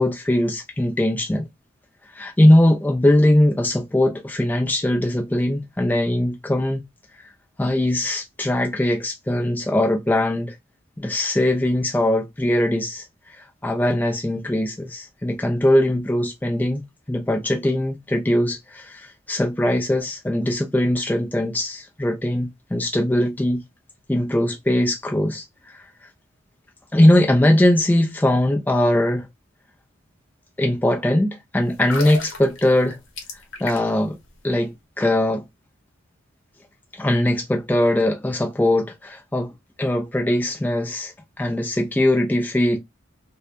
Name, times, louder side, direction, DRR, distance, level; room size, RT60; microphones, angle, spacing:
voice 1, 0.0-1.5 2.1-6.8 7.6-10.6 11.0-16.8 17.1-23.6 24.1-25.8 26.9-29.3 30.6-33.0 33.6-34.2 34.4-35.4 36.9-39.5 39.8-42.8, left 1 dB, 10° left, 0.3 m, -20 dB
sound 1, 31.7-34.1 34.4-34.5, left 4 dB, 70° left, 0.8 m, -33 dB
2.7 x 2.1 x 2.2 m
head